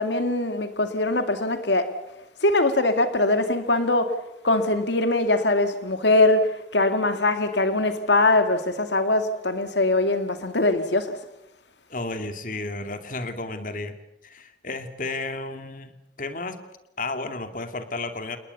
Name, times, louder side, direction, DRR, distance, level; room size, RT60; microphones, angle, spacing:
voice 1, 0.0-1.9 2.4-4.2 4.4-11.2, left 2 dB, 80° left, 2.2 m, -22 dB
voice 2, 11.9-13.9 14.2-16.6 17.0-18.4, left 2 dB, 45° left, 2.6 m, -32 dB
29.0 x 21.0 x 7.0 m
head